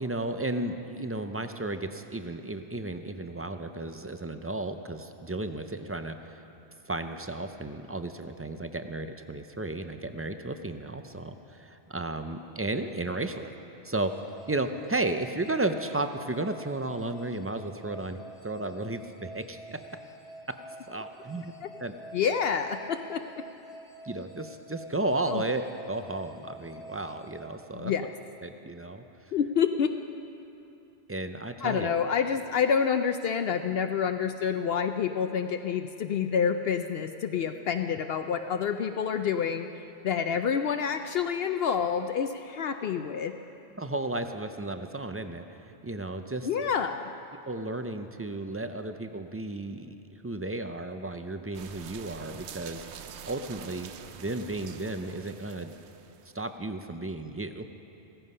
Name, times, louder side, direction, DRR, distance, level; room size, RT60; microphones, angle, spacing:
voice 1, 0.0-6.4 6.9-13.5 13.8-14.1 14.5-19.8 20.9-21.5 21.8-21.9 24.0-27.9 28.4-29.0 31.1-31.9 43.8-46.5 47.4-52.9 53.3-55.7 56.3-57.7, right 2 dB, 25° right, 8 dB, 0.3 m, -34 dB
sound 1, 13.9-28.3, equal, 35° left, 1.4 m, -49 dB
voice 2, 22.1-23.2 25.3-25.4 27.7-28.1 29.3-29.9 31.6-43.3 46.4-47.1, left 7 dB, 65° left, 7 dB, 0.8 m, -28 dB
sound 2, 51.5-56.4, right 8 dB, 80° right, 1.0 m, -46 dB
16.0 x 14.5 x 5.5 m, 2.9 s
omnidirectional pair, 1.1 m